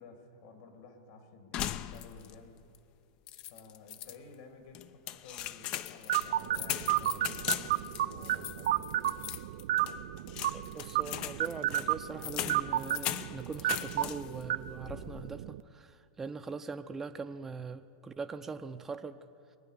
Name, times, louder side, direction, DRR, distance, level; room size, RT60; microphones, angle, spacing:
voice 1, 0.0-2.6 3.5-9.3, left 4 dB, 65° left, 5 dB, 2.9 m, -53 dB
sound 1, 1.5-2.4 2.7-2.8 3.3-4.2 4.7-14.4 14.8-15.3, left 12 dB, 45° left, 0.5 m, -39 dB
sound 2, 6.1-15.6, right 13 dB, 65° right, 0.4 m, -33 dB
voice 2, 10.5-19.2, right 4 dB, 15° right, 8 dB, 0.6 m, -42 dB
22.5 x 9.2 x 6.7 m, 2.7 s
hypercardioid pair, 105°, 2 cm